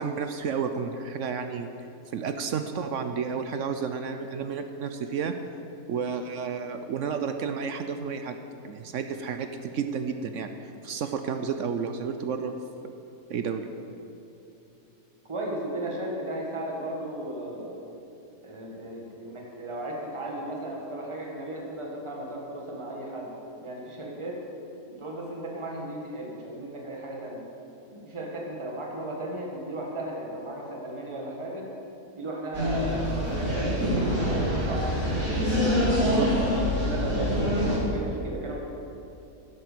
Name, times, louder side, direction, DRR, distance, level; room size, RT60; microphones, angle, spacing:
voice 1, 0.0-1.7 2.1-5.3 5.9-8.4 8.6-10.5 10.8-12.5 13.3-13.6 36.0-36.3, right 6 dB, 65° right, 7 dB, 0.8 m, -31 dB
voice 2, 15.2-17.8 18.4-23.3 23.6-24.4 24.9-27.4 27.9-31.7 32.1-36.1 36.8-38.6, right 1 dB, 20° right, -1 dB, 1.6 m, -35 dB
sound 1, 32.5-37.8, equal, 85° right, 3.7 m, -25 dB
10.5 x 8.4 x 6.7 m, 2.8 s
omnidirectional pair, 1.7 m